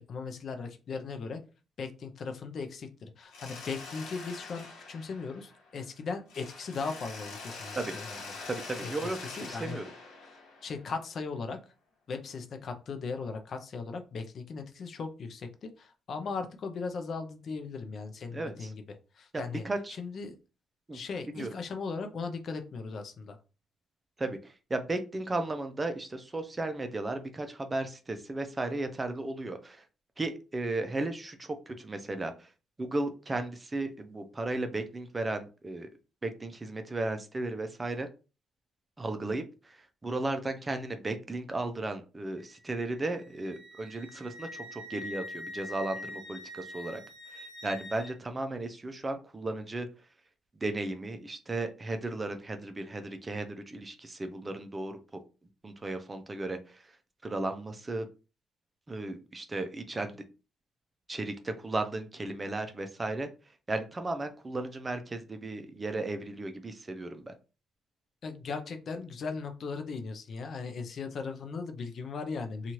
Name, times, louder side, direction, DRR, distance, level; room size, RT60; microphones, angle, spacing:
voice 1, 0.0-1.4 1.8-8.2 8.8-9.8 10.6-11.6 12.1-18.8 19.2-19.6 20.0-20.4 20.9-23.4 68.2-72.7, left 4 dB, 55° left, 6 dB, 0.5 m, -38 dB
Mechanisms, 3.3-5.9 6.3-11.1, left 3 dB, 90° left, 1.0 m, -44 dB
voice 2, 8.5-9.9 18.3-18.7 19.3-20.0 20.9-21.0 21.3-21.5 24.2-29.8 30.2-32.5 32.8-35.9 36.2-38.1 39.0-47.0 47.3-49.9 50.6-55.0 55.6-56.8 57.2-58.1 58.9-60.2 61.1-63.3 63.7-67.3, right 2 dB, 25° right, 7 dB, 0.5 m, -35 dB
Wind instrument woodwind instrument, 42.4-48.1, left 1 dB, 15° left, 1.4 m, -45 dB
2.7 x 2.4 x 3.0 m, 0.32 s
cardioid pair, 90°, 0 cm